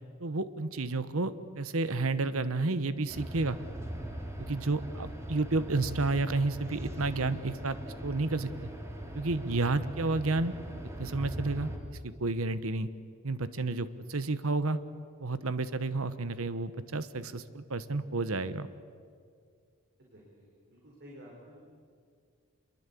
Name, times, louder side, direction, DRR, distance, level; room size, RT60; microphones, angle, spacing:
voice 1, 0.2-3.6 4.4-7.8 8.0-8.7 9.1-10.5 11.0-11.7 12.0-12.9 13.2-14.8 15.2-18.7, right 3 dB, 70° right, 14 dB, 1.1 m, -31 dB
sound 1, 3.1-11.8, equal, 15° right, 3.2 m, -40 dB
voice 2, 20.0-21.6, equal, 50° right, -3 dB, 4.8 m, -53 dB
26.5 x 22.5 x 8.4 m, 2.1 s
head